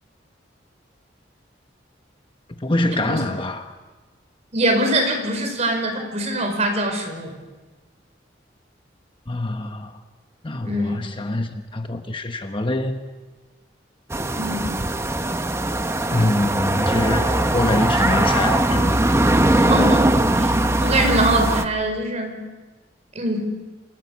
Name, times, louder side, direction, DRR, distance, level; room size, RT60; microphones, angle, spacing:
voice 1, 2.6-3.7 9.3-9.9 10.4-13.0 16.1-19.0, left 1 dB, 30° left, 1.1 m, -24 dB
voice 2, 4.5-7.3 10.6-11.0 14.4-14.7 19.5-22.4 23.1-23.4, right 1 dB, 40° right, 4.9 m, -23 dB
sound 1, 14.1-21.6, right 1 dB, 15° right, 0.9 m, -20 dB
27.0 x 14.0 x 8.5 m
head